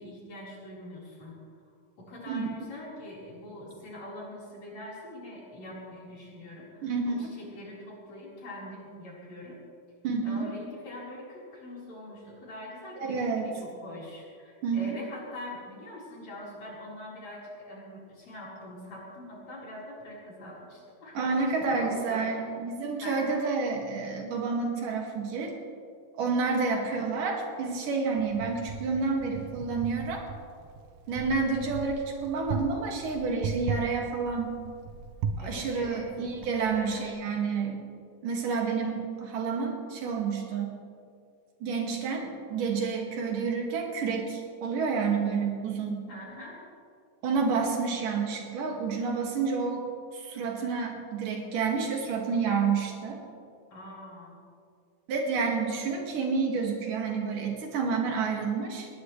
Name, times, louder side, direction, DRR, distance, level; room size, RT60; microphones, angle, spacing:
voice 1, 0.0-1.4 2.0-9.6 10.2-22.5 23.0-23.4 26.7-27.1 35.4-36.1 36.7-37.1 46.1-46.6 53.7-54.4, left 1 dB, 55° left, -6 dB, 5.7 m, -43 dB
voice 2, 6.8-7.2 10.0-10.5 13.0-13.4 14.6-14.9 21.2-25.5 26.2-30.2 31.1-34.6 35.4-37.9 38.2-40.7 41.6-46.0 47.2-49.9 50.1-53.2 55.1-58.9, right 5 dB, 85° right, 0 dB, 3.8 m, -29 dB
Wind, 28.2-37.1, right 5 dB, 70° right, 1.6 m, -38 dB
20.0 x 19.5 x 3.3 m, 2.3 s
omnidirectional pair, 3.7 m